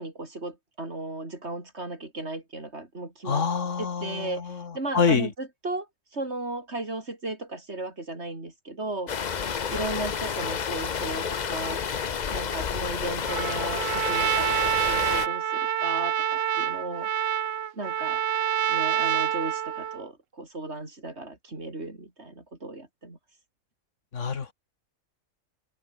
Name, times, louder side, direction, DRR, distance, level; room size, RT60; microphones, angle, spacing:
voice 1, 0.0-3.5 3.8-5.9 6.1-9.1 9.7-11.8 12.3-17.1 17.7-18.2 18.7-23.2, right 2 dB, 55° right, 4.5 m, -35 dB
voice 2, 3.3-5.3 24.1-24.5, left 5 dB, 70° left, 1.9 m, -26 dB
sound 1, 9.1-15.3, left 7 dB, 40° left, 0.8 m, -30 dB
Trumpet, 13.3-20.1, right 10 dB, 75° right, 1.2 m, -27 dB
open air
omnidirectional pair, 1.3 m